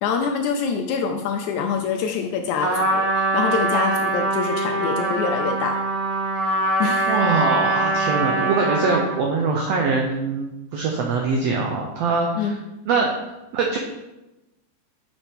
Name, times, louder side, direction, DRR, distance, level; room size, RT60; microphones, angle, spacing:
voice 1, 0.0-5.8 6.8-7.2 12.4-12.6, left 6 dB, 80° left, 4 dB, 1.8 m, -25 dB
Trumpet, 2.6-9.2, right 2 dB, 30° right, 2.1 m, -23 dB
voice 2, 7.1-12.6 12.9-13.1 13.5-13.8, right 4 dB, 85° right, 1 dB, 1.4 m, -23 dB
7.2 x 5.7 x 3.5 m, 0.99 s
omnidirectional pair, 3.8 m